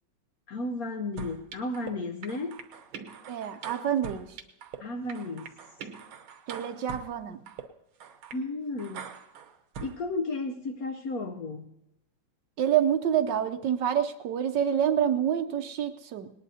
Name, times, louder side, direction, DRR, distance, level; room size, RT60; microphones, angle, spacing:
voice 1, 0.5-2.6 4.8-5.5 8.3-9.1 9.8-11.7, left 2 dB, 60° left, 5 dB, 1.0 m, -33 dB
sound 1, 1.2-1.9 2.2-4.8 5.1-7.1 7.5-7.6 8.0-8.4 8.8-9.9, right 7 dB, 90° right, 1.9 m, -42 dB
voice 2, 3.3-4.4 6.5-7.4 12.6-16.3, right 9 dB, 70° right, 9 dB, 1.2 m, -27 dB
19.5 x 19.0 x 2.8 m, 0.84 s
omnidirectional pair, 2.2 m